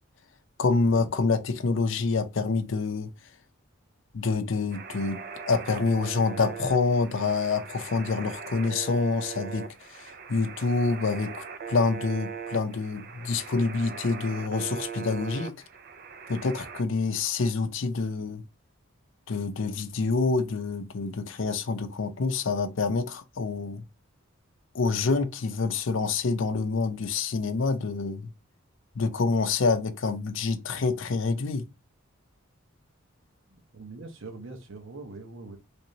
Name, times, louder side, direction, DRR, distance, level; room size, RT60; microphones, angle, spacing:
voice 1, 0.6-3.1 4.1-5.2 5.5-15.6 16.3-18.4 19.3-23.8 24.7-28.3 29.0-31.6, left 4 dB, 60° left, 0.5 m, -27 dB
sound 1, 4.7-16.8, right 6 dB, 45° right, 0.4 m, -40 dB
voice 2, 33.5-35.6, right 3 dB, 60° right, 0.8 m, -43 dB
3.3 x 3.0 x 2.7 m
head